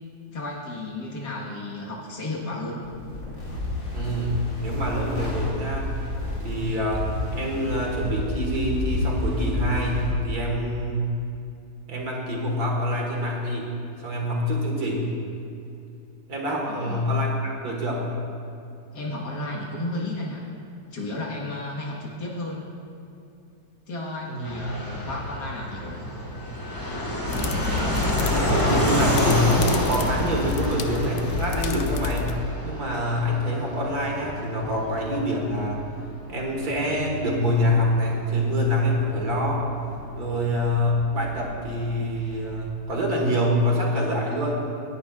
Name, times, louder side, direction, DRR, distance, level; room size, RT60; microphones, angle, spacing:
voice 1, 0.3-2.8 3.5-3.6 16.7-17.1 18.9-20.4 20.9-22.6 23.9-26.1, left 2 dB, 65° left, -2 dB, 2.1 m, -33 dB
sound 1, 2.8-10.1, left 2 dB, 30° left, 3.4 m, -30 dB
voice 2, 3.9-5.9 6.4-11.1 11.9-13.7 14.0-15.1 16.3-18.1 24.3-24.5 27.7-32.3 32.6-35.8 36.3-39.6 40.2-44.6, equal, 55° right, -1 dB, 2.1 m, -26 dB
Fixed-wing aircraft airplane, 24.4-42.8, equal, 10° left, 1.4 m, -30 dB
sound 2, 27.3-32.3, left 6 dB, 85° left, 1.4 m, -29 dB
18.5 x 10.5 x 2.4 m, 2.6 s
omnidirectional pair, 1.9 m